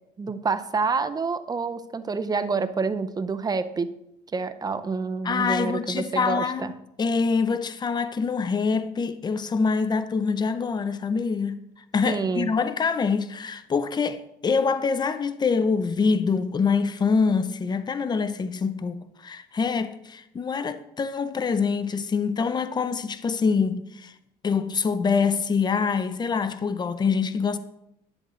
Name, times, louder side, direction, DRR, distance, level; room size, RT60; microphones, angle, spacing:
voice 1, 0.2-3.9 4.3-6.7 12.1-12.5, right 4 dB, 25° right, 0.5 m, -28 dB
voice 2, 5.2-11.6 11.9-24.1 24.4-27.6, left 5 dB, 25° left, 0.6 m, -25 dB
10.5 x 7.6 x 3.1 m
cardioid pair, 110°, 17 cm